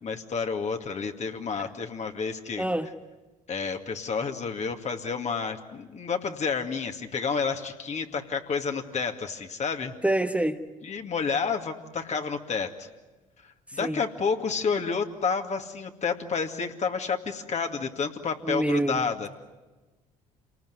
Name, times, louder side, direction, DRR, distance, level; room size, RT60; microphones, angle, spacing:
voice 1, 0.0-2.7 3.5-9.9 10.8-12.9 13.7-19.3, left 5 dB, 40° left, 5 dB, 2.4 m, -30 dB
voice 2, 2.6-2.9 10.0-10.6 13.8-14.0 18.5-19.0, right 1 dB, 5° right, 6 dB, 1.3 m, -26 dB
28.0 x 19.0 x 9.6 m, 1.2 s
hypercardioid pair, 55°, 17 cm